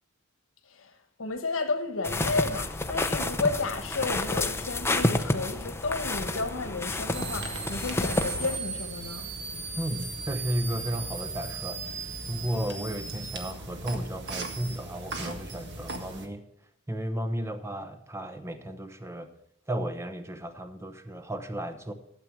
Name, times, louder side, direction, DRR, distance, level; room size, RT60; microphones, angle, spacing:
voice 1, 1.2-9.3, left 3 dB, 80° left, 1.1 m, -32 dB
sound 1, 2.0-8.6, left 2 dB, 10° left, 0.6 m, -30 dB
sound 2, 7.1-16.3, right 3 dB, 60° right, 1.6 m, -37 dB
voice 2, 9.8-11.9 12.3-16.5 16.9-19.3 19.7-21.9, right 1 dB, 15° right, 0.9 m, -34 dB
12.5 x 7.8 x 6.2 m
head